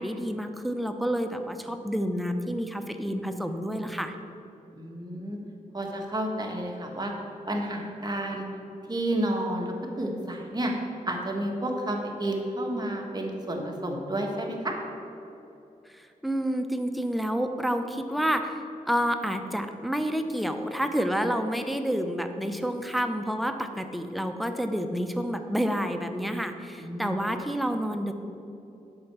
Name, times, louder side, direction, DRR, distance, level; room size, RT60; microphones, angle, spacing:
voice 1, 0.0-4.1 15.9-28.1, equal, ahead, 6 dB, 0.7 m, -29 dB
voice 2, 4.8-5.4 5.7-7.1 7.5-8.5 8.9-10.7 11.1-14.7 26.8-27.2, right 1 dB, 30° right, 0 dB, 1.5 m, -31 dB
7.9 x 4.4 x 7.1 m, 2.8 s
cardioid pair, 60°, 15 cm